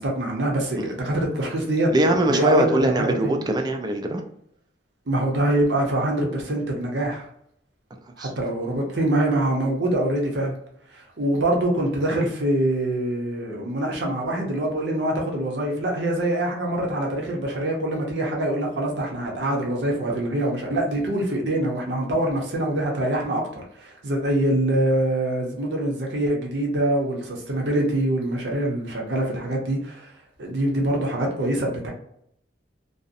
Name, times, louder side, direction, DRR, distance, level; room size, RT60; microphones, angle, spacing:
voice 1, 0.0-2.6 3.0-3.1 5.1-7.2 8.2-10.6 10.9-30.1 30.4-31.9, right 1 dB, 70° right, 0 dB, 0.7 m, -24 dB
voice 2, 1.9-4.2 8.2-8.3, right 1 dB, 25° right, 4 dB, 0.3 m, -22 dB
2.6 x 2.0 x 2.5 m, 0.72 s
head